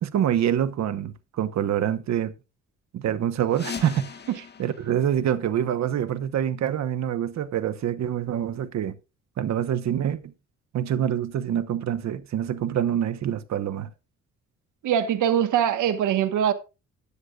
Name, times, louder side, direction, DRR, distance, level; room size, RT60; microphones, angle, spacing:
voice 1, 0.0-2.3 2.9-4.1 4.6-8.9 9.4-10.3 10.7-13.9, right 10 dB, 65° right, 1.1 m, -26 dB
sound 1, 3.5-6.1, left 6 dB, 35° left, 1.6 m, -40 dB
voice 2, 14.8-16.5, right 9 dB, 80° right, 1.4 m, -22 dB
15.0 x 10.0 x 2.5 m
cardioid pair, 90°, 30 cm